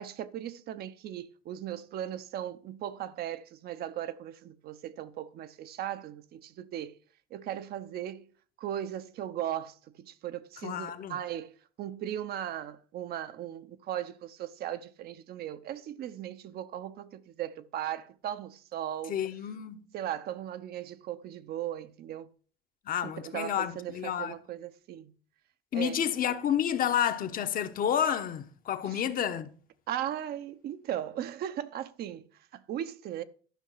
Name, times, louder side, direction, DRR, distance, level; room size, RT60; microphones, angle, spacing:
voice 1, 0.0-7.0 7.3-8.3 8.6-19.2 19.9-22.3 23.0-25.1 25.7-26.0 28.8-29.0 29.9-33.2, right 11 dB, 65° right, 0.8 m, -37 dB
voice 2, 10.6-11.2 19.1-19.9 22.9-24.4 25.7-29.5, left 9 dB, 55° left, 1.1 m, -30 dB
11.5 x 5.8 x 5.6 m
cardioid pair, 110°, 17 cm